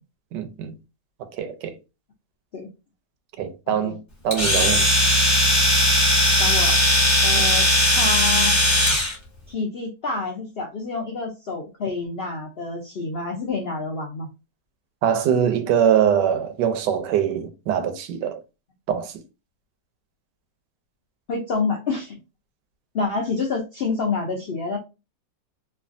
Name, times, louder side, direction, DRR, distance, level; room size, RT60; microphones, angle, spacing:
voice 1, 0.3-0.8 1.2-1.7 3.4-4.0 4.2-4.9 6.7-6.8 15.0-18.4 18.9-19.1, right 8 dB, 90° right, 1.2 m, -23 dB
Domestic sounds home sounds, 4.3-9.1, left 1 dB, 15° left, 0.6 m, -18 dB
voice 2, 6.4-6.7 7.2-8.5 9.5-14.3 21.3-22.2 22.9-24.8, left 3 dB, 85° left, 0.5 m, -28 dB
3.2 x 2.3 x 2.5 m
omnidirectional pair, 1.8 m